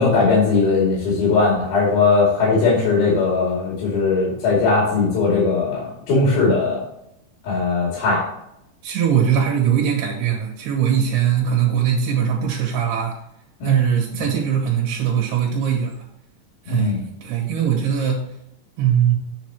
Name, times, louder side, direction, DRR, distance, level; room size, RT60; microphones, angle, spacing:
voice 1, 0.0-6.8 7.4-8.2 13.6-13.8 14.2-14.3 16.7-17.0, left 4 dB, 70° left, -4 dB, 4.4 m, -19 dB
voice 2, 8.8-13.2 13.6-15.9 16.7-17.0 17.2-18.2 18.8-19.2, right 8 dB, 90° right, -1 dB, 3.7 m, -20 dB
9.1 x 7.2 x 3.0 m, 0.79 s
omnidirectional pair, 4.5 m